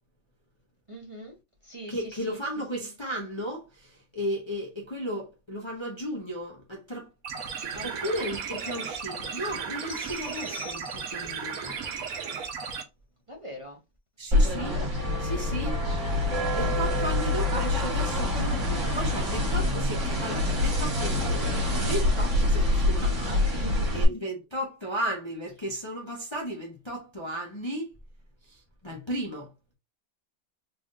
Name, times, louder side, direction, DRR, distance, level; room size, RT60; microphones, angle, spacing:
voice 1, 0.9-1.3 1.6-2.4 7.7-8.2 13.3-13.8 14.4-15.3 15.6-17.1 23.0-24.0, equal, 25° right, 0.9 m, -43 dB
voice 2, 1.9-7.1 7.8-11.8 14.2-14.8 15.2-15.8 16.5-23.2 23.9-27.9 28.4-29.5, equal, 25° left, 0.8 m, -35 dB
sound 1, 7.2-12.8, right 6 dB, 75° right, 1.2 m, -35 dB
sound 2, 9.9-11.4, left 8 dB, 65° left, 1.2 m, -46 dB
sound 3, 14.3-24.0, left 1 dB, 55° right, 1.8 m, -26 dB
4.0 x 3.5 x 2.4 m
omnidirectional pair, 1.6 m